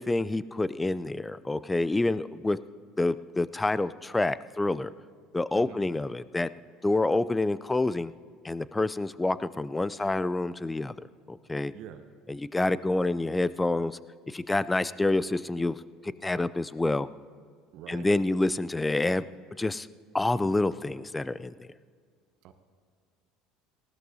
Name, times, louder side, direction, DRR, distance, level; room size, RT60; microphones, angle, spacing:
voice 1, 0.0-2.6 3.0-4.9 5.3-6.5 6.8-8.1 8.4-10.9 11.3-11.7 12.3-14.0 14.3-15.8 16.2-17.1 17.9-19.2 19.6-19.9 20.1-21.7, left 2 dB, 15° left, 17 dB, 0.4 m, -27 dB
voice 2, 5.5-5.9 11.7-12.0 17.7-18.1 22.4-22.5, right 10 dB, 60° right, 8 dB, 0.8 m, -45 dB
19.5 x 16.0 x 2.8 m, 2.1 s
hypercardioid pair, 70°, 0 cm